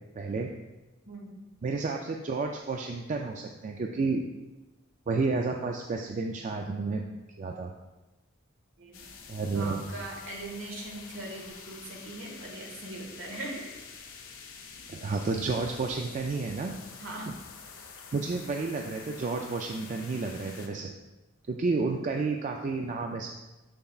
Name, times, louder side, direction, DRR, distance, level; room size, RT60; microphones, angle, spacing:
voice 1, 0.2-0.5 1.6-4.2 5.1-7.0 7.4-7.7 9.3-9.8 14.9-16.7 18.1-20.9 21.5-23.3, right 4 dB, 40° right, 2 dB, 0.3 m, -31 dB
voice 2, 1.1-1.4 8.8-9.1 9.5-13.8 17.0-17.4, right 2 dB, 65° right, -1 dB, 1.5 m, -40 dB
sound 1, 8.9-20.7, left 5 dB, 80° left, 0.8 m, -47 dB
6.9 x 6.7 x 2.4 m, 1.1 s
head